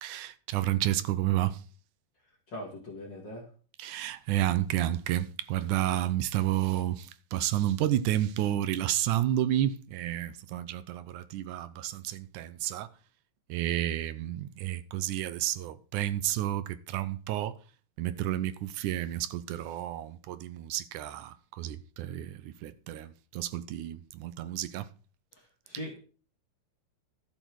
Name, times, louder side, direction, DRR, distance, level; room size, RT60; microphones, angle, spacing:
voice 1, 0.0-1.6 3.8-12.9 13.5-17.6 18.0-24.9, right 13 dB, 75° right, 2.0 m, -31 dB
voice 2, 2.5-3.4 25.3-26.1, left 1 dB, 35° left, 2.8 m, -41 dB
13.0 x 7.8 x 4.6 m
omnidirectional pair, 3.9 m